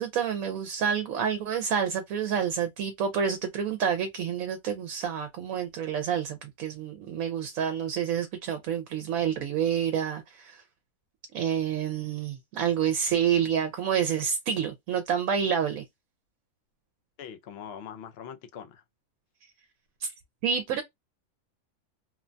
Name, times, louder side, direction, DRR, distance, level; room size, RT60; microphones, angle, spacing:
voice 1, 0.0-10.6 11.3-15.8 20.0-20.1 20.4-20.8, right 8 dB, 75° right, 0.9 m, -28 dB
voice 2, 17.2-18.8, left 8 dB, 60° left, 0.7 m, -42 dB
3.0 x 2.2 x 2.5 m
omnidirectional pair, 1.4 m